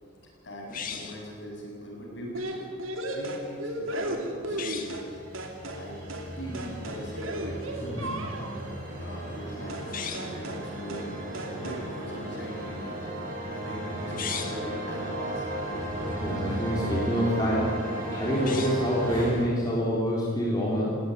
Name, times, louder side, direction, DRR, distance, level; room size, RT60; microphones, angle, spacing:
voice 1, 0.4-2.7 3.1-5.2 5.8-6.0 6.4-8.7 9.0-11.2 11.6-13.0 13.5-15.6, equal, 55° left, -2 dB, 7.6 m, -41 dB
sound 1, 0.7-1.3 4.5-5.0 9.8-10.4 14.0-14.7 18.3-18.9, left 6 dB, 40° left, 1.9 m, -37 dB
sound 2, 2.3-5.1 5.3-5.8 6.1-6.3 6.5-8.6 9.7-9.9 10.1-10.6 10.9-11.1 11.3-11.8, right 1 dB, 70° right, 2.8 m, -35 dB
sound 3, 4.8-19.5, right 1 dB, 40° right, 7.7 m, -35 dB
voice 2, 16.2-17.8 18.1-21.0, equal, 20° left, -5 dB, 3.8 m, -27 dB
19.5 x 17.5 x 9.5 m, 2.1 s
head